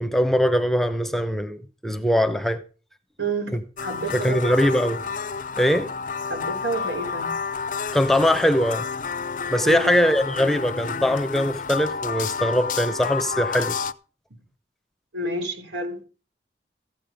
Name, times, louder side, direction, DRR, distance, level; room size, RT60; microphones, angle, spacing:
voice 1, 0.0-2.6 4.1-5.0 5.6-5.9 7.9-8.9 9.5-13.8, equal, ahead, 0.7 m, -21 dB
voice 2, 3.2-4.5 6.3-7.3 9.6-9.9 15.1-16.0, right 2 dB, 90° right, 3.6 m, -29 dB
sound 1, 3.8-13.9, left 5 dB, 45° left, 0.5 m, -30 dB
14.5 x 8.8 x 5.1 m
head